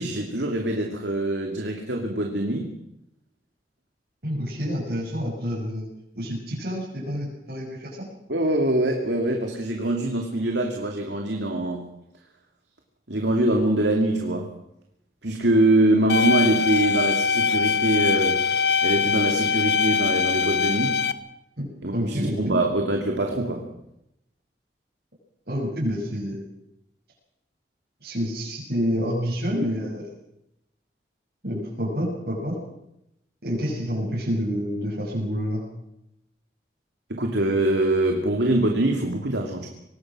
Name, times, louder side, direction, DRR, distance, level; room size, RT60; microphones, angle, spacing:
voice 1, 0.0-2.7 8.3-11.9 13.1-14.5 15.2-18.4 18.8-21.0 21.8-23.6 37.1-39.7, right 1 dB, 90° right, 2 dB, 2.6 m, -23 dB
voice 2, 4.2-8.1 21.6-21.7 21.9-22.6 25.5-26.4 28.0-30.1 31.4-32.5 33.4-35.6, equal, 70° right, -5 dB, 6.9 m, -28 dB
sound 1, 16.1-21.1, left 5 dB, 70° left, 1.1 m, -22 dB
25.0 x 19.0 x 6.2 m, 0.83 s
head